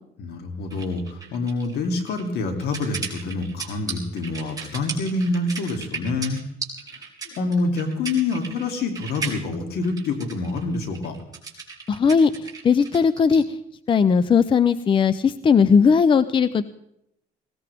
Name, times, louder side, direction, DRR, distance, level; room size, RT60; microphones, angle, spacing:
voice 1, 0.2-6.4 7.3-11.2, left 3 dB, 75° left, 5 dB, 2.9 m, -26 dB
sound 1, 0.7-13.4, right 5 dB, 20° right, 4.0 m, -36 dB
voice 2, 11.9-13.6 13.9-16.6, left 6 dB, 30° left, 15 dB, 0.6 m, -18 dB
19.5 x 17.5 x 3.5 m, 0.77 s
cardioid pair, 110°, 17 cm